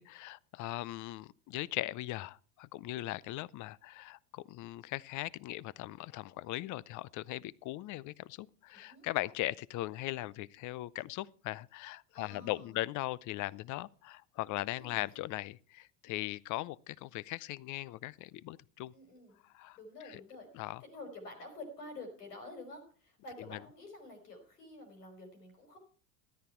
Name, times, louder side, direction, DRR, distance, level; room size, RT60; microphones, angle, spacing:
voice 1, 0.0-18.9 19.5-19.8 20.0-20.2 20.5-20.8 23.5-23.6, left 17 dB, 40° left, 0.6 m, -39 dB
voice 2, 8.7-9.1 12.1-12.7 14.7-15.0 18.9-19.4 19.7-25.8, left 2 dB, 90° left, 5.2 m, -49 dB
13.5 x 11.0 x 4.4 m
hypercardioid pair, 85°, 46 cm